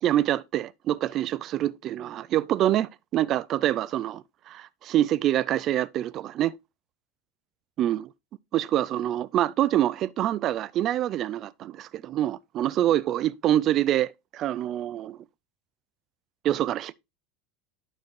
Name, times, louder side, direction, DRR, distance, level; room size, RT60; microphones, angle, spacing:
voice 1, 0.0-6.5 7.8-8.1 8.5-15.2 16.4-16.9, right 12 dB, 30° right, 0.3 m, -26 dB
12.0 x 4.5 x 3.1 m
supercardioid pair, 165°, 0 cm